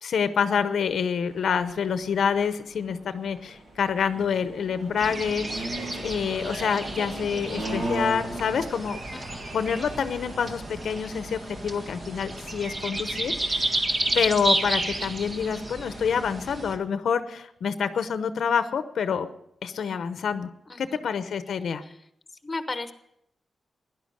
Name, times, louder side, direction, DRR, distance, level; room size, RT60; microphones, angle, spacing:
voice 1, 0.0-5.7 6.0-9.0 9.5-13.8 14.1-19.3 19.6-20.5 20.8-21.8, left 6 dB, 80° left, 11 dB, 0.8 m, -27 dB
sound 1, 1.2-13.0, right 1 dB, 60° right, 6.7 m, -38 dB
sound 2, 5.0-16.8, right 1 dB, 35° right, 1.7 m, -32 dB
voice 2, 9.1-9.4 20.7-20.8 22.4-22.9, left 3 dB, 25° left, 9 dB, 1.1 m, -33 dB
16.5 x 11.0 x 6.5 m, 0.77 s
wide cardioid pair, 125°, 0 cm